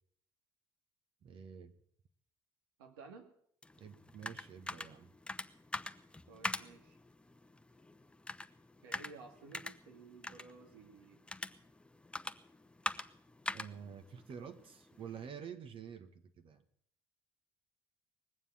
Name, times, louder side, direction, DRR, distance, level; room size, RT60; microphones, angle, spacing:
voice 1, 1.2-1.7 3.8-5.1 13.5-16.6, right 7 dB, 50° right, 8 dB, 1.6 m, -49 dB
voice 2, 2.8-3.3 6.3-7.0 8.8-11.2, right 4 dB, 90° right, 5 dB, 2.2 m, -54 dB
sound 1, 3.6-15.3, left 2 dB, 10° left, 0.9 m, -45 dB
20.0 x 7.5 x 8.6 m, 0.67 s
supercardioid pair, 70°, 11 cm